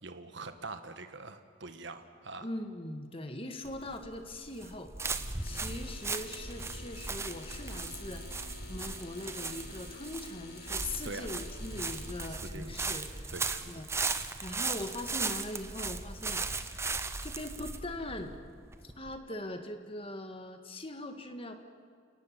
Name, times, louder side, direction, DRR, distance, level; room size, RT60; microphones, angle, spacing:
voice 1, 0.0-2.5 11.0-11.3 12.4-12.7 13.3-13.6, right 3 dB, 60° right, 8 dB, 1.4 m, -43 dB
voice 2, 2.4-8.2 8.7-13.3 13.7-13.9 14.4-16.4 17.2-18.4 18.8-21.5, left 1 dB, 25° left, 6 dB, 1.7 m, -41 dB
sound 1, 3.7-19.2, right 4 dB, 15° right, 0.9 m, -37 dB
sound 2, 5.1-12.6, left 5 dB, 50° left, 3.5 m, -50 dB
29.5 x 18.5 x 7.5 m, 2.1 s
head